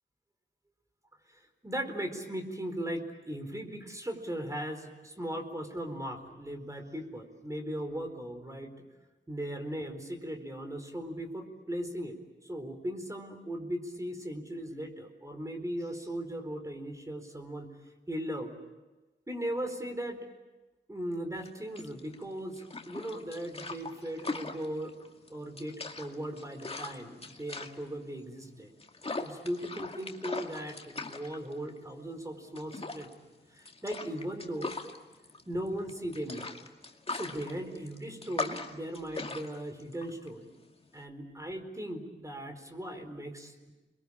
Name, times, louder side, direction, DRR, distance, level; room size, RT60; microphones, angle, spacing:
voice 1, 1.3-8.7 9.3-12.2 12.4-17.8 18.1-18.6 19.3-20.3 20.9-24.9 25.3-28.7 29.2-33.1 33.5-34.8 35.5-36.5 37.1-40.5 40.9-43.7, right 1 dB, 15° right, 6 dB, 4.3 m, -38 dB
sound 1, 21.4-41.1, left 3 dB, 30° left, 2.2 m, -41 dB
29.5 x 22.5 x 8.7 m, 1.2 s
wide cardioid pair, 80°, 18 cm